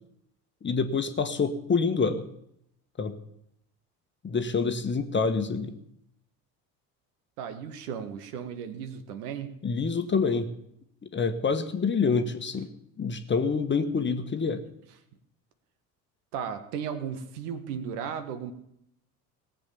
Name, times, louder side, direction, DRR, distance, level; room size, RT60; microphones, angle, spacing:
voice 1, 0.6-2.3 3.0-3.2 4.2-5.7 9.6-10.5 11.1-12.7 13.0-14.6, left 5 dB, 25° left, 8 dB, 1.3 m, -27 dB
voice 2, 7.4-9.6 16.3-18.5, right 7 dB, 65° right, 9 dB, 1.6 m, -35 dB
18.5 x 7.6 x 7.1 m, 0.76 s
figure-of-eight pair, 65°, 49 cm